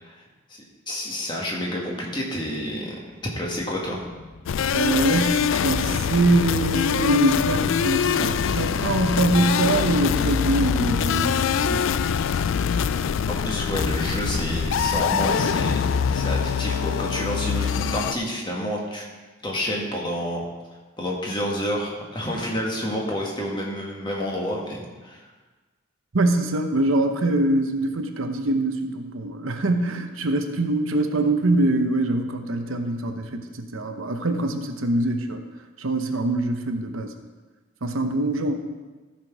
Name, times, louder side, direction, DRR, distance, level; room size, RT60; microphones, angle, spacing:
voice 1, 0.5-3.0 3.4-4.0 13.3-19.1 19.4-20.4 21.0-25.3, equal, 20° left, -2 dB, 1.7 m, -29 dB
sound 1, 4.1-16.4, left 2 dB, 90° left, 1.0 m, -36 dB
sound 2, 4.5-18.1, left 7 dB, 70° left, 0.3 m, -24 dB
voice 2, 4.7-11.9 26.1-35.4 35.8-37.1 37.8-38.5, right 2 dB, 80° right, 6 dB, 0.9 m, -23 dB
14.0 x 6.0 x 4.7 m, 1.3 s
head